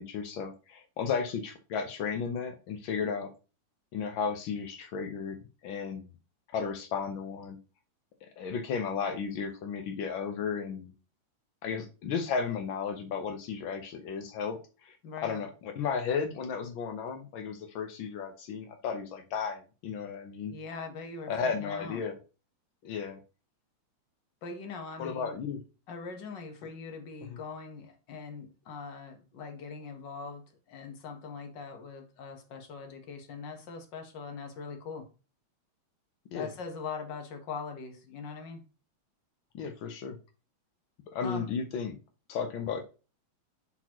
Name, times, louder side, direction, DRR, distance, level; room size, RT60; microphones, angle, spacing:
voice 1, 0.0-3.3 3.9-5.4 5.6-6.0 6.5-7.6 8.2-10.9 11.6-15.0 15.2-20.5 21.3-22.1 22.8-23.2 25.0-25.6 36.3-36.5 39.5-40.2 41.1-42.0 42.3-42.8, left 6 dB, 80° left, 5 dB, 1.1 m, -34 dB
voice 2, 15.0-15.4 20.5-22.0 24.4-25.4 25.9-35.1 36.3-38.6 41.2-41.5, left 5 dB, 55° left, 5 dB, 1.4 m, -42 dB
10.5 x 4.0 x 2.9 m, 0.32 s
omnidirectional pair, 3.3 m